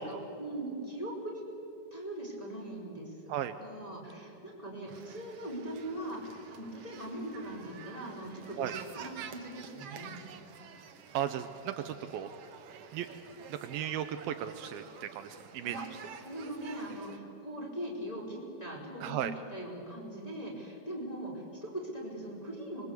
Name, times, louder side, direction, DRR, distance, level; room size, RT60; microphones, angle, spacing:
voice 1, 0.0-1.4 1.9-3.3 3.6-8.7 8.9-10.1 15.6-15.8 16.2-22.9, right 1 dB, 10° left, -3 dB, 4.5 m, -41 dB
sound 1, 4.9-17.2, right 7 dB, 60° right, 1.6 m, -49 dB
voice 2, 11.1-12.3 12.9-13.1 13.5-15.8 19.0-19.3, right 11 dB, 80° right, 9 dB, 2.5 m, -35 dB
25.5 x 22.5 x 8.3 m, 2.8 s
omnidirectional pair, 4.4 m